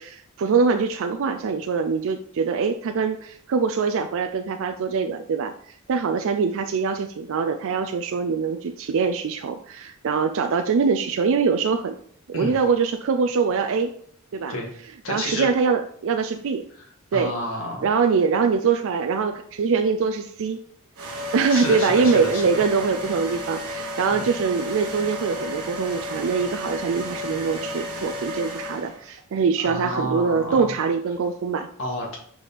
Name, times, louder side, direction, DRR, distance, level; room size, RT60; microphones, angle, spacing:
voice 1, 0.0-11.9 12.3-13.9 14.3-14.6 15.1-16.6 17.1-17.3 17.8-20.6 21.3-31.7, right 5 dB, 65° right, 6 dB, 0.4 m, -23 dB
voice 2, 15.0-15.5 17.1-17.9 21.5-22.4 24.0-24.3 29.6-30.7 31.8-32.2, left 1 dB, 65° left, -2 dB, 1.9 m, -30 dB
sound 1, 21.0-29.1, left 1 dB, 85° right, 1.3 m, -32 dB
4.9 x 4.7 x 4.2 m, 0.62 s
head